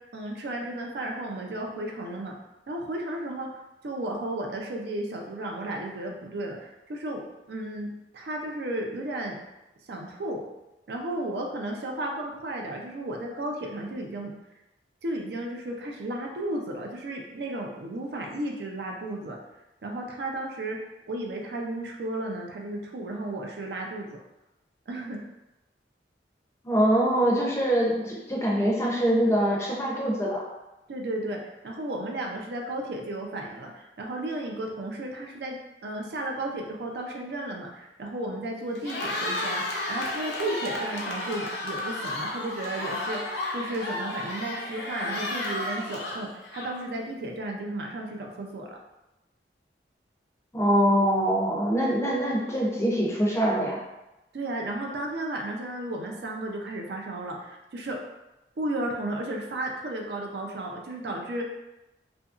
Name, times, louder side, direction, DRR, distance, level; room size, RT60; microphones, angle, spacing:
voice 1, 0.1-2.4 2.7-3.5 3.8-7.2 7.5-9.4 9.9-10.4 10.9-14.3 15.0-19.4 19.8-20.8 21.1-24.2 24.9-25.2 30.9-48.8 54.3-58.0 58.6-61.4, right 1 dB, 70° right, 1 dB, 0.4 m, -34 dB
voice 2, 26.6-30.4 50.5-53.8, equal, 15° left, -4 dB, 0.5 m, -24 dB
Cheering, 38.7-47.0, left 1 dB, 75° left, 0.5 m, -32 dB
2.7 x 2.5 x 2.4 m, 0.98 s
head